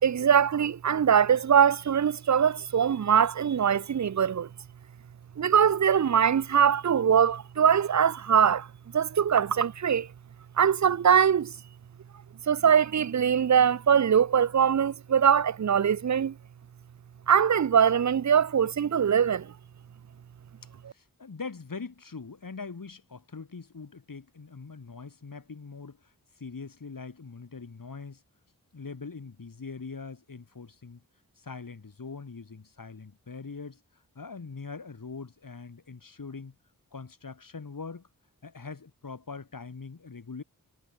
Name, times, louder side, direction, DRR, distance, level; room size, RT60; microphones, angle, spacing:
voice 1, 0.0-4.5 5.4-8.7 8.9-10.1 10.6-11.5 12.5-16.3 17.3-19.5, right 8 dB, 50° right, 0.6 m, -22 dB
voice 2, 20.9-28.2 28.7-31.0 31.4-33.8 34.1-36.5 36.9-38.1 38.4-40.4, left 4 dB, 65° left, 4.8 m, -42 dB
wide cardioid pair, 70°, 36 cm